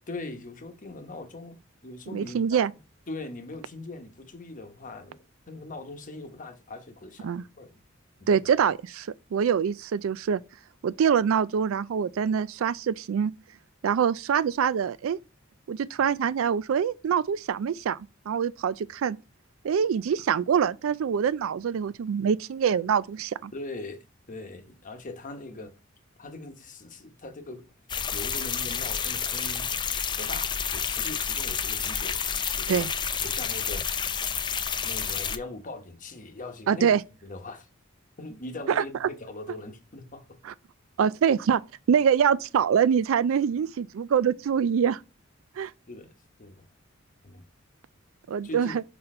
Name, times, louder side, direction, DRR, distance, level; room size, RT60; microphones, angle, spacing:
voice 1, 0.1-2.6 3.1-7.7 8.3-8.4 23.5-25.8 26.2-27.7 28.1-29.7 30.2-32.2 32.6-32.9 33.2-33.9 34.8-36.9 37.2-37.7 38.2-40.4 45.9-46.1 46.4-46.6 47.2-47.4 48.4-48.8, left 2 dB, 40° left, 1.0 m, -41 dB
voice 2, 2.1-2.7 7.2-7.4 8.3-10.4 10.8-13.3 13.8-15.2 15.7-18.0 18.3-19.2 19.6-23.5 32.7-32.9 36.7-37.0 38.7-38.8 40.5-40.6 41.0-41.6 41.9-45.0 45.6-45.7 48.3-48.8, right 7 dB, 80° right, 0.3 m, -24 dB
sound 1, 27.9-35.4, left 7 dB, 25° left, 0.4 m, -30 dB
5.6 x 4.1 x 4.3 m
head